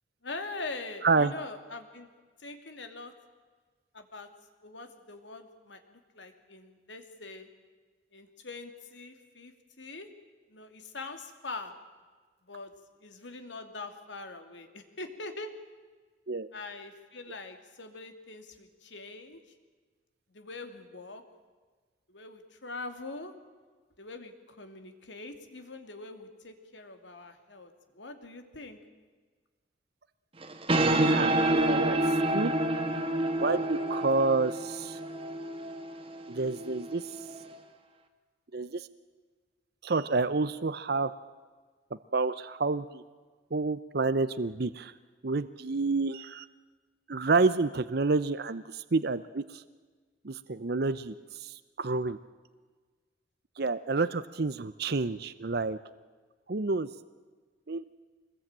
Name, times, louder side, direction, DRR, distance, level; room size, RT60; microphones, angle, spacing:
voice 1, 0.2-2.1 2.4-3.1 3.9-4.3 4.6-7.5 8.1-10.1 10.5-11.7 12.5-12.7 13.0-15.5 16.5-19.4 20.3-21.2 22.1-23.3 24.0-28.8, left 3 dB, 80° left, 7 dB, 2.7 m, -43 dB
sound 1, 30.4-37.6, right 1 dB, 30° right, 1.9 m, -29 dB
voice 2, 30.7-32.5 33.4-35.0 36.3-37.1 38.5-38.9 39.8-41.1 42.1-43.0 43.5-44.9 45.2-46.5 47.1-49.6 50.2-52.2 53.6-55.8 56.5-56.9 57.7-57.8, right 3 dB, 60° right, 13 dB, 0.7 m, -29 dB
25.0 x 20.5 x 9.0 m, 1.4 s
head